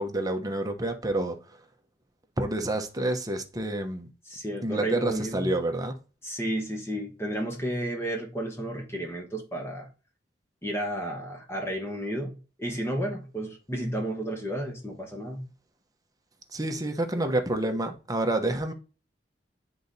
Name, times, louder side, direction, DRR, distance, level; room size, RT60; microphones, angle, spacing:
voice 1, 0.0-1.6 2.4-4.1 4.6-6.0 16.5-18.7, right 1 dB, 20° right, 0.9 m, -28 dB
voice 2, 4.3-5.5 6.2-9.9 10.6-15.4, right 1 dB, 15° left, 1.2 m, -32 dB
10.0 x 3.9 x 2.7 m
head